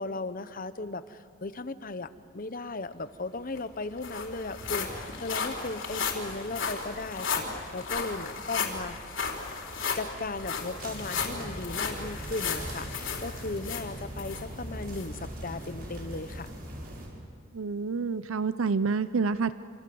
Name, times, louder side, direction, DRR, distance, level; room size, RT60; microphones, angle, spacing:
voice 1, 0.0-9.0 9.9-16.5, left 3 dB, 45° left, 12 dB, 1.0 m, -37 dB
sound 1, 3.2-3.3 3.6-14.4 14.9-15.1 15.6-15.7, left 5 dB, 65° left, 4.3 m, -34 dB
sound 2, 10.8-17.1, right 1 dB, 45° right, 6.9 m, -40 dB
voice 2, 17.5-19.5, right 4 dB, 80° right, 14 dB, 0.6 m, -28 dB
28.0 x 27.0 x 7.8 m, 2.3 s
head